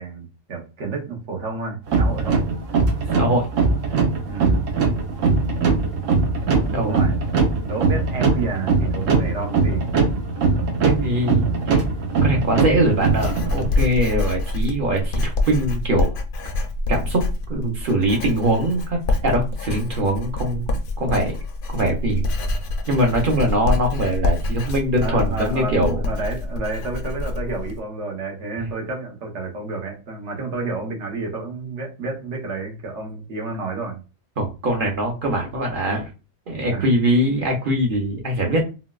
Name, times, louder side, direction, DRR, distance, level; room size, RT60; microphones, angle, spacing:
voice 1, 0.0-2.4 4.3-4.6 6.6-7.2 7.6-9.8 25.0-34.0 36.6-36.9, right 3 dB, 70° right, 1 dB, 1.2 m, -30 dB
sound 1, 1.9-13.7, right 4 dB, 85° right, 1.2 m, -21 dB
voice 2, 3.1-3.5 6.7-7.0 10.8-11.8 12.2-16.1 16.9-17.2 17.5-20.6 21.0-21.3 21.7-22.2 22.9-26.0 28.6-28.7 34.4-36.1 36.5-38.6, right 1 dB, 50° right, 1 dB, 0.9 m, -22 dB
Writing, 12.4-27.8, left 2 dB, 60° left, 0.6 m, -26 dB
3.9 x 2.3 x 2.3 m, 0.31 s
omnidirectional pair, 1.3 m